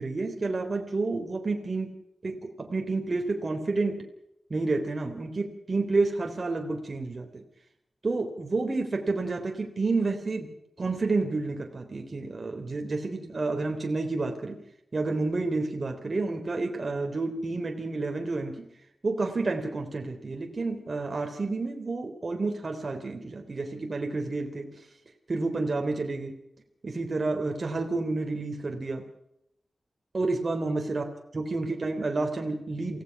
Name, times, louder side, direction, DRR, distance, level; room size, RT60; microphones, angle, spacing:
voice 1, 0.0-1.9 2.2-4.0 4.5-7.3 8.0-10.5 10.8-14.6 14.9-18.7 19.0-24.8 25.3-26.3 26.8-29.0 30.1-31.1 31.3-33.0, right 3 dB, 45° right, 2 dB, 3.5 m, -30 dB
28.0 x 17.0 x 6.0 m, 0.77 s
wide cardioid pair, 75°, 0 cm